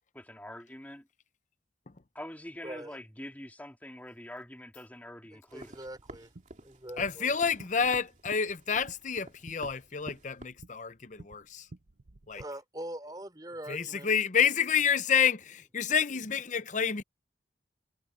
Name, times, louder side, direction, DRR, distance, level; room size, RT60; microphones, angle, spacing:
voice 1, 0.1-1.0 2.1-5.8, left 1 dB, 10° left, 2.6 m, -45 dB
voice 2, 2.6-3.0 5.3-6.3 6.6-7.3 12.3-14.1, right 1 dB, 20° right, 4.8 m, -43 dB
sound 1, 5.5-10.5, right 1 dB, 45° right, 2.8 m, -50 dB
sound 2, 5.9-12.5, right 2 dB, 75° right, 1.1 m, -54 dB
voice 3, 7.0-11.7 12.3-12.4 13.7-17.0, left 7 dB, 45° left, 0.8 m, -29 dB
head